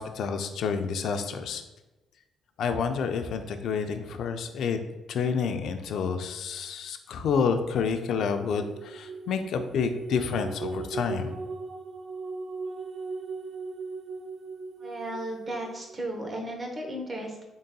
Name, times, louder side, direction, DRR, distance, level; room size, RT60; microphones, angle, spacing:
voice 1, 0.0-1.6 2.6-4.8 5.1-11.4, left 6 dB, 70° left, 7 dB, 0.4 m, -29 dB
sound 1, 8.1-16.0, right 4 dB, 50° right, 0.4 m, -38 dB
voice 2, 14.8-17.4, right 1 dB, 30° right, 1 dB, 0.9 m, -35 dB
3.9 x 3.7 x 2.3 m, 1.0 s
cardioid pair, 90°, 0 cm